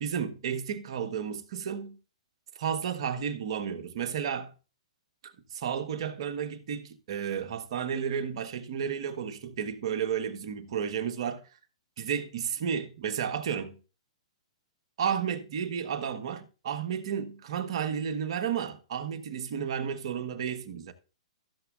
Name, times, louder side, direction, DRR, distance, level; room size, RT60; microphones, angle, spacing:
voice 1, 0.0-2.0 2.5-4.5 5.2-11.4 12.0-13.8 15.0-20.9, right 8 dB, 60° right, 1.3 m, -32 dB
15.0 x 7.1 x 2.5 m
hypercardioid pair, 120°, 3 cm